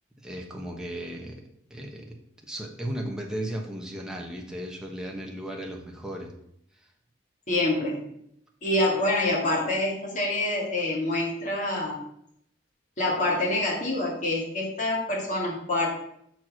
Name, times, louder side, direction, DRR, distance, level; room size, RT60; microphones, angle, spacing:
voice 1, 0.2-1.4 1.7-2.2 2.5-6.3, right 1 dB, 5° right, 0 dB, 1.2 m, -35 dB
voice 2, 7.5-8.0 8.6-12.0 13.0-15.9, left 2 dB, 45° left, -3 dB, 2.5 m, -26 dB
6.2 x 4.7 x 6.2 m, 0.73 s
head